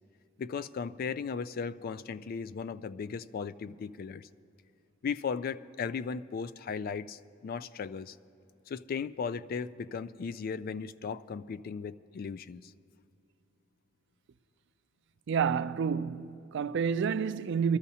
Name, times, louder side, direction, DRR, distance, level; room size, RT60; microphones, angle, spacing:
voice 1, 0.4-4.3 5.0-8.2 8.7-12.7, left 6 dB, 50° left, 0.3 m, -36 dB
voice 2, 15.3-17.8, right 6 dB, 65° right, 0.4 m, -29 dB
21.5 x 13.5 x 2.8 m
head